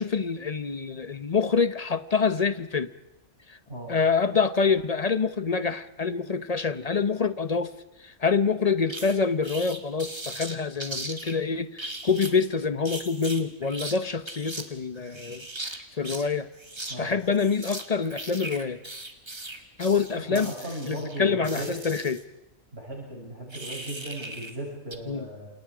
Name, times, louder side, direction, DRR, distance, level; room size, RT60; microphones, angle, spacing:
voice 1, 0.0-2.9 3.5-3.6 3.9-7.7 8.0-15.4 16.0-16.5 17.0-18.8 19.8-20.5 20.9-22.2 25.1-25.3, left 5 dB, 35° left, 13 dB, 0.8 m, -26 dB
sound 1, 8.9-9.1 9.4-11.4 11.8-12.4 12.9-14.0 14.3-14.6 15.0-16.3 16.5-17.0 17.2-22.2 23.5-24.6 24.9-25.0, right 2 dB, 20° right, 1.8 m, -38 dB
voice 2, 20.1-21.8 22.7-25.5, right 1 dB, 45° right, -6 dB, 7.8 m, -37 dB
28.0 x 28.0 x 5.0 m, 1.0 s
omnidirectional pair, 1.5 m